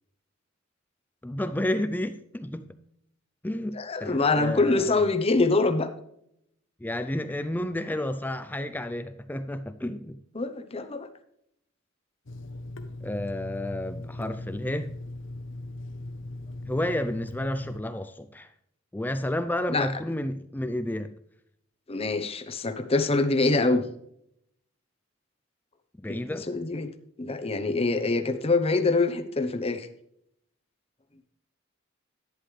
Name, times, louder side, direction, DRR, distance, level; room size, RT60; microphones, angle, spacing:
voice 1, 1.2-2.7 3.4-5.1 6.8-10.2 13.0-14.9 16.7-18.5 18.9-21.1 26.0-26.5, left 1 dB, 10° left, 10 dB, 0.4 m, -31 dB
voice 2, 3.7-5.9 10.3-11.1 19.7-19.9 21.9-23.8 26.1-26.2 26.5-26.9 27.2-29.9, left 3 dB, 30° left, 9 dB, 0.9 m, -25 dB
Water tap faucet / Sink (filling or washing), 12.3-17.8, left 2 dB, 70° left, 1.0 m, -39 dB
11.0 x 10.5 x 3.2 m, 0.73 s
head